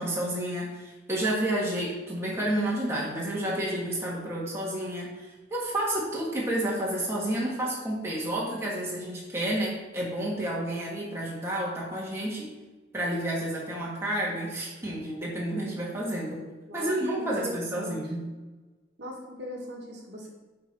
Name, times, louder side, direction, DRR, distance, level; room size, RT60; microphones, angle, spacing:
voice 1, 0.0-12.5 12.9-16.4 16.7-18.2, right 1 dB, 15° right, -5 dB, 1.5 m, -30 dB
voice 2, 17.2-18.0 19.0-20.3, equal, 60° right, -2 dB, 1.4 m, -39 dB
6.8 x 4.5 x 4.5 m, 1.2 s
head